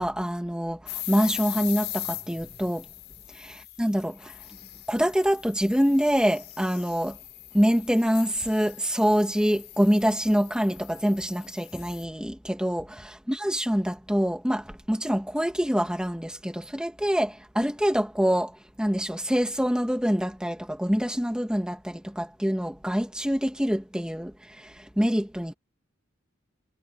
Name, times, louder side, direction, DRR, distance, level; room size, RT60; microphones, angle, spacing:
voice 1, 0.0-2.8 3.3-3.5 3.8-4.3 4.9-7.2 7.5-25.5, equal, 5° right, 2.2 m, -25 dB
sound 1, 0.9-12.0, left 15 dB, 55° left, 7.5 m, -40 dB
head